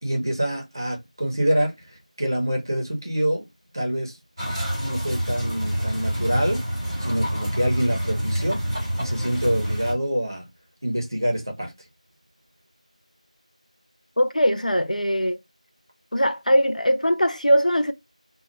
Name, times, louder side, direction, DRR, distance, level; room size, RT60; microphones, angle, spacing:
voice 1, 0.0-1.8 2.2-3.4 3.7-4.1 4.8-6.6 7.0-8.6 9.0-10.4 10.8-11.7, equal, 30° right, 0.6 m, -25 dB
sound 1, 4.4-9.9, equal, 5° left, 1.0 m, -27 dB
voice 2, 14.2-15.4 16.1-17.9, equal, 75° left, 0.5 m, -21 dB
2.2 x 2.1 x 2.8 m
figure-of-eight pair, 175°, 4 cm